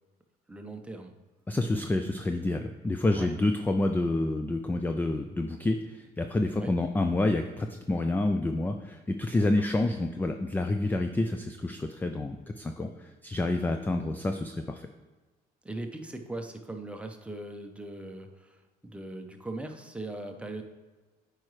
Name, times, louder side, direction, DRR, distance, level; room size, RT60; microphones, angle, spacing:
voice 1, 0.5-1.1 3.1-3.3 6.6-6.7 9.4-9.5 15.6-20.6, right 2 dB, 5° right, 4 dB, 0.8 m, -40 dB
voice 2, 1.5-14.9, left 2 dB, 10° left, 6 dB, 0.4 m, -28 dB
8.7 x 4.8 x 3.2 m, 1.3 s
cardioid pair, 110°, 17 cm